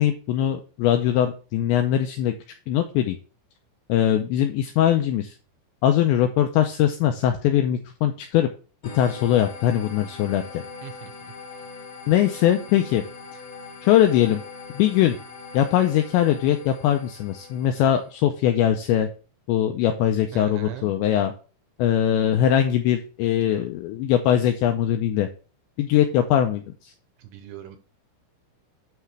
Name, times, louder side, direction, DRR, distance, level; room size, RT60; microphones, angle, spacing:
voice 1, 0.0-2.3 2.7-3.2 3.9-5.3 5.8-8.5 8.9-10.4 12.1-13.0 13.8-14.4 14.7-15.2 15.5-19.1 19.5-21.3 21.8-25.3 25.8-26.9, left 11 dB, 90° left, 6 dB, 2.6 m, -21 dB
sound 1, 8.8-18.2, left 4 dB, 70° left, 1.1 m, -41 dB
voice 2, 20.3-20.9 23.4-23.7 27.2-27.8, right 12 dB, 80° right, 9 dB, 2.8 m, -38 dB
9.2 x 5.8 x 3.2 m, 0.36 s
omnidirectional pair, 5.9 m